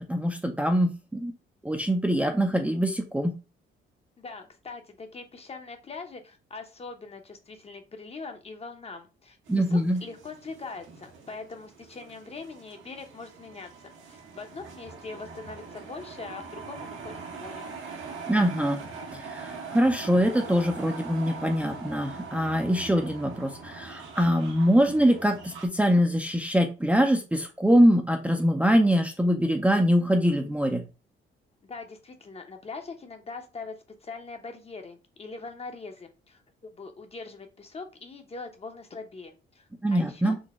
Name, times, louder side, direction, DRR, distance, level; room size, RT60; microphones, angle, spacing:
voice 1, 0.1-1.3 1.6-3.3 9.5-10.0 18.3-18.8 19.1-30.8 39.8-40.4, equal, 5° right, 3 dB, 0.5 m, -23 dB
voice 2, 4.2-13.7 14.1-17.7 31.6-33.8 34.0-36.4 36.7-39.6 39.9-40.3, left 4 dB, 30° left, 5 dB, 0.8 m, -42 dB
sound 1, 9.5-25.7, right 4 dB, 75° right, 1.2 m, -42 dB
3.9 x 2.1 x 3.5 m, 0.31 s
cardioid pair, 90°, 20 cm